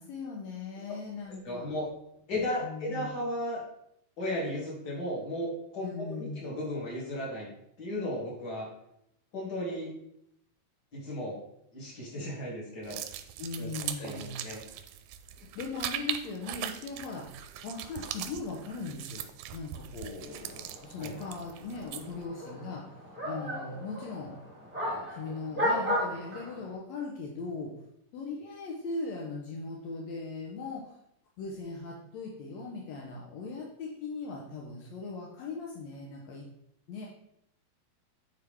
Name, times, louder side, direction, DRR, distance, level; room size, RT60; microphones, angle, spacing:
voice 1, 0.0-1.7 2.6-3.2 5.8-6.5 13.4-14.4 15.5-17.3 17.6-22.8 23.2-24.4 24.8-27.7 28.1-31.0 31.4-36.5 36.9-37.1, left 3 dB, 75° left, -1 dB, 1.6 m, -39 dB
voice 2, 1.4-1.9 2.3-3.6 4.2-7.5 7.8-8.7 9.3-9.9 10.9-11.4 11.7-13.0 13.6-13.7 14.0-14.6 21.0-21.1, left 1 dB, 30° left, -5 dB, 2.6 m, -35 dB
sound 1, 12.8-22.2, right 11 dB, 90° right, 2.5 m, -40 dB
sound 2, 20.3-26.7, equal, 5° right, 1.2 m, -35 dB
9.7 x 4.6 x 3.5 m, 0.75 s
omnidirectional pair, 4.3 m